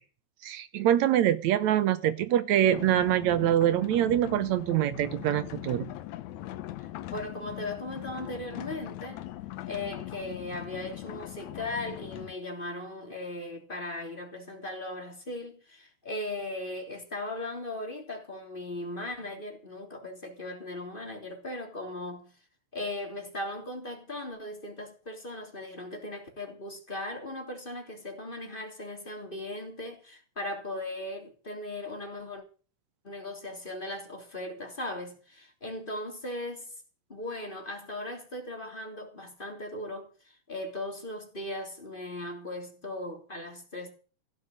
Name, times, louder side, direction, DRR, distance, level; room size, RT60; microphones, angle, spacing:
voice 1, 0.4-5.9, right 11 dB, 70° right, 2.1 m, -24 dB
sound 1, 2.7-12.3, left 15 dB, 75° left, 2.1 m, -41 dB
voice 2, 7.1-9.2 9.6-22.3 22.7-32.4 33.0-36.7 37.1-43.9, left 1 dB, 15° left, 3.3 m, -38 dB
16.0 x 7.4 x 9.3 m
omnidirectional pair, 3.5 m